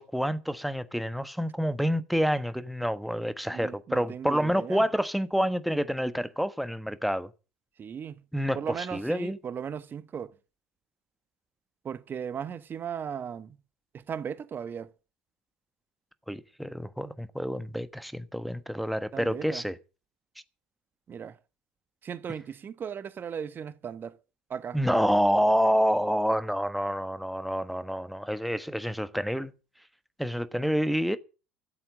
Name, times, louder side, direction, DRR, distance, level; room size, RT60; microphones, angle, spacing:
voice 1, 0.0-7.3 8.3-8.6 8.9-9.4 16.3-19.7 24.7-29.5 30.2-31.2, equal, ahead, 1.2 m, -28 dB
voice 2, 3.5-4.9 7.8-8.2 8.5-10.3 11.8-13.6 13.9-14.9 19.1-19.6 21.1-21.4 22.0-24.2 24.5-24.8, right 7 dB, 35° right, 1.3 m, -37 dB
13.5 x 7.7 x 8.5 m
hypercardioid pair, 80°, 6 cm